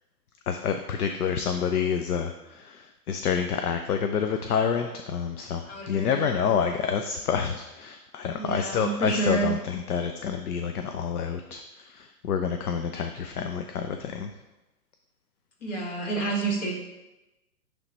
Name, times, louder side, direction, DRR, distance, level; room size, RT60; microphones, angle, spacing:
voice 1, 0.5-14.3, left 7 dB, 65° left, 6 dB, 0.6 m, -28 dB
voice 2, 5.6-6.2 8.3-9.5 15.6-16.7, right 3 dB, 45° left, -1 dB, 1.9 m, -29 dB
8.9 x 3.4 x 3.9 m, 1.0 s
figure-of-eight pair, 130°, 49 cm